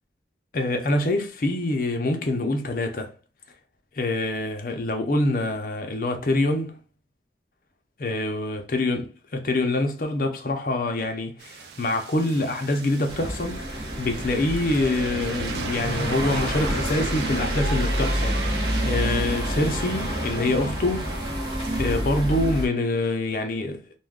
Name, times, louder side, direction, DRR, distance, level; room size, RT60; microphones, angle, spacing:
voice 1, 0.5-3.1 4.0-6.8 8.0-21.1 21.8-24.0, left 2 dB, 50° left, 0.5 m, -25 dB
sound 1, 11.4-22.0, right 5 dB, 65° right, 0.4 m, -37 dB
sound 2, 13.1-22.7, equal, 25° right, 0.8 m, -28 dB
2.3 x 2.2 x 3.4 m
head